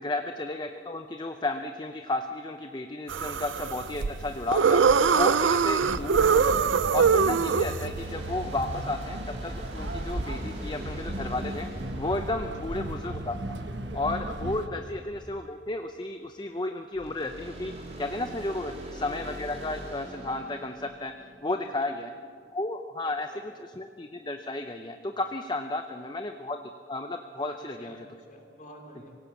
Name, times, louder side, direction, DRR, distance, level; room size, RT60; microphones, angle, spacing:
voice 1, 0.0-6.5 6.9-11.7 12.0-13.6 13.9-21.1 21.4-22.1 22.5-26.6 26.9-28.0, left 2 dB, 25° left, 6 dB, 0.6 m, -33 dB
sound 1, 3.1-8.0, right 6 dB, 85° right, 0.5 m, -23 dB
sound 2, 5.8-14.7, right 1 dB, 70° right, 1.4 m, -36 dB
sound 3, 8.0-13.4 16.9-21.7, equal, 35° right, 3.4 m, -42 dB
voice 2, 21.5-22.0 23.0-23.4 25.9-26.1 27.5-29.2, equal, 40° left, 2 dB, 3.7 m, -50 dB
25.0 x 17.0 x 7.3 m, 2.3 s
head